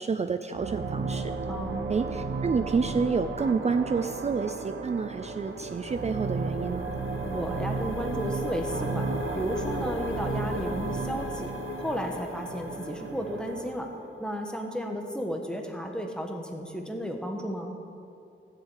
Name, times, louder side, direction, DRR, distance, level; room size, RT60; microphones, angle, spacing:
voice 1, 0.0-1.3 1.9-6.9, right 5 dB, 35° right, 8 dB, 0.4 m, -29 dB
sound 1, 0.5-13.9, right 4 dB, 75° right, 1.1 m, -34 dB
voice 2, 1.5-1.9 7.2-11.5 11.8-13.9 14.2-17.7, equal, 5° left, 2 dB, 1.3 m, -33 dB
sound 2, 5.4-14.0, left 4 dB, 90° left, 0.8 m, -41 dB
14.0 x 7.2 x 8.4 m, 2.5 s
wide cardioid pair, 125°, 20 cm